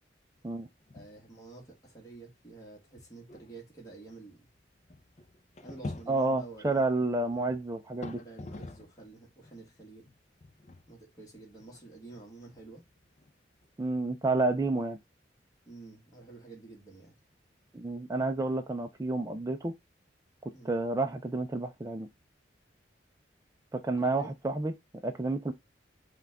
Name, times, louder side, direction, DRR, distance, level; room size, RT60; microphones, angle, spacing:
sound 1, 0.8-1.3 1.6-1.7 2.4-2.5 3.0-9.1 9.4-13.7, left 2 dB, 35° left, 0.5 m, -47 dB
voice 1, 0.9-4.5 5.6-6.8 7.3-7.4 8.2-10.1 10.9-12.8 15.7-17.2 20.5-20.7 24.0-24.3, right 3 dB, 20° left, 1.3 m, -49 dB
voice 2, 6.1-8.2 13.8-15.0 17.7-19.8 20.6-22.1 23.7-24.7 25.0-25.5, right 2 dB, 20° right, 0.4 m, -30 dB
5.7 x 2.3 x 3.4 m
head